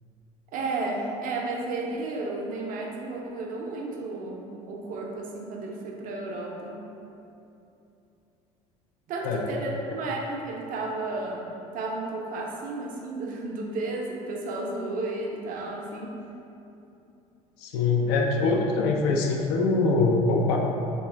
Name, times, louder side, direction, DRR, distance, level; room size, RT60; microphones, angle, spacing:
voice 1, 0.5-6.8 9.1-16.2, right 2 dB, 50° right, 0 dB, 0.5 m, -33 dB
voice 2, 17.6-20.6, left 3 dB, 65° left, 0 dB, 0.4 m, -23 dB
3.0 x 2.2 x 3.2 m, 2.8 s
hypercardioid pair, 65°, 19 cm